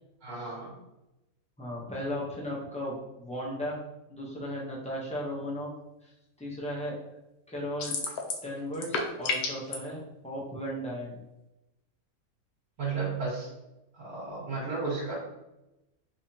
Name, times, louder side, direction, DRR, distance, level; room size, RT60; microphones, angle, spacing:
voice 1, 0.2-0.7 12.8-13.5 13.9-15.1, right 4 dB, 75° right, -10 dB, 1.8 m, -33 dB
voice 2, 1.6-3.8 4.1-5.7 6.0-6.1 6.4-7.0 7.5-8.0 8.4-11.2, equal, 5° left, -5 dB, 0.6 m, -36 dB
sound 1, 7.8-8.5 8.7-9.8, left 4 dB, 85° left, 1.1 m, -30 dB
3.5 x 3.4 x 2.8 m, 0.94 s
omnidirectional pair, 1.5 m